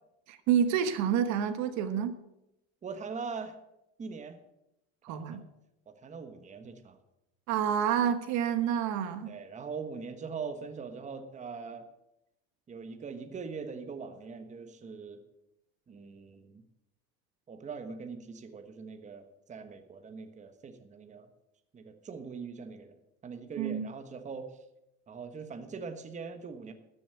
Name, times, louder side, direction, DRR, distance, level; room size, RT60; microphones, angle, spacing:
voice 1, 0.3-2.2 5.0-5.4 7.5-9.3 23.6-23.9, right 8 dB, 60° right, 10 dB, 1.3 m, -28 dB
voice 2, 2.8-3.5 4.0-4.4 5.1-5.4 6.0-7.0 9.3-11.9 12.7-15.2 15.9-16.6 17.5-21.3 21.7-23.0 23.2-24.6 25.1-26.7, right 5 dB, 20° right, 7 dB, 1.3 m, -42 dB
13.5 x 7.1 x 7.3 m, 0.87 s
cardioid pair, 130°, 32 cm